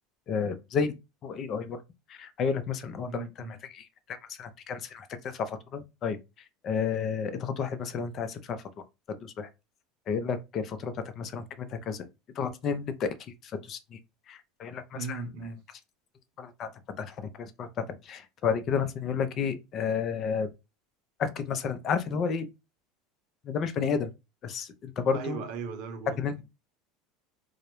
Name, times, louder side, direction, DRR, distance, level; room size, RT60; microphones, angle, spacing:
voice 1, 0.3-0.9 1.2-1.8 2.1-6.2 6.6-8.6 9.2-9.5 10.1-12.0 12.4-14.0 14.3-15.2 16.4-20.5 21.2-22.5 23.4-24.1 24.4-25.4 26.2-26.4, left 6 dB, 45° left, 0.5 m, -32 dB
voice 2, 3.0-3.6 14.9-15.6 25.1-26.4, right 5 dB, 65° right, 0.7 m, -38 dB
2.3 x 2.0 x 2.9 m
supercardioid pair, 110°, 0 cm